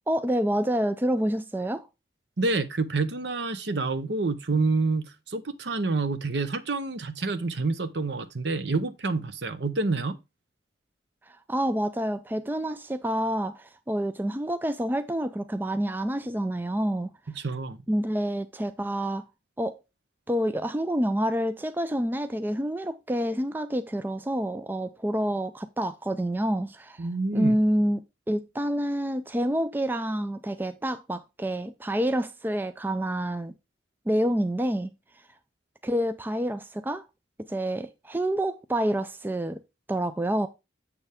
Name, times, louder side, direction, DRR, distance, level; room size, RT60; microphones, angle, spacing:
voice 1, 0.1-1.9 11.3-17.1 17.9-19.2 19.6-19.8 20.3-27.1 27.3-28.0 28.3-33.5 34.1-34.9 35.8-37.0 37.5-39.6 39.9-40.5, right 1 dB, 10° right, 0.3 m, -28 dB
voice 2, 2.4-10.2 17.4-17.8 27.0-27.6, right 3 dB, 60° right, 0.8 m, -28 dB
6.9 x 6.6 x 3.5 m
head